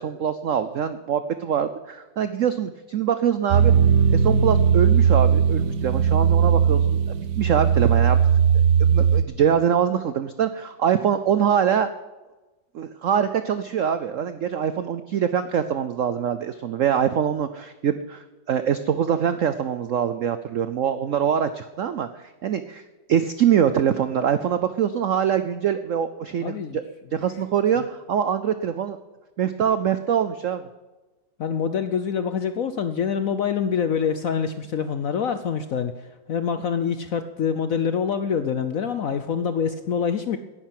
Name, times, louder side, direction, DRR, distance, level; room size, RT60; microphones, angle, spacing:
voice 1, 0.0-3.7 4.1-8.2 8.5-11.9 12.7-22.8 23.1-26.8 27.1-29.0 29.4-30.6, right 8 dB, 80° right, 11 dB, 0.7 m, -24 dB
sound 1, 3.5-9.2, right 7 dB, 60° right, 1.2 m, -18 dB
voice 2, 26.4-26.8 27.7-27.8 31.4-35.9 36.3-40.4, left 7 dB, 65° left, 10 dB, 0.8 m, -25 dB
10.5 x 10.0 x 9.2 m, 1.1 s
omnidirectional pair, 2.1 m